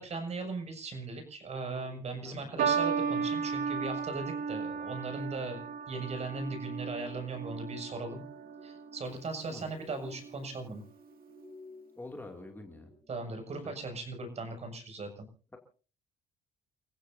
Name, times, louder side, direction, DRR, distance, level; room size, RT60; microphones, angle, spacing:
voice 1, 0.0-8.2 8.6-10.8 13.1-15.3, right 3 dB, 40° right, 5 dB, 6.8 m, -38 dB
sound 1, 1.5-13.4, left 1 dB, 5° right, 6.5 m, -57 dB
sound 2, 2.6-9.1 10.0-10.4, right 6 dB, 60° right, 1.9 m, -34 dB
voice 2, 12.0-12.9, left 2 dB, 10° left, 2 dB, 2.6 m, -46 dB
30.0 x 15.5 x 2.7 m, 0.38 s
cardioid pair, 110°, 17 cm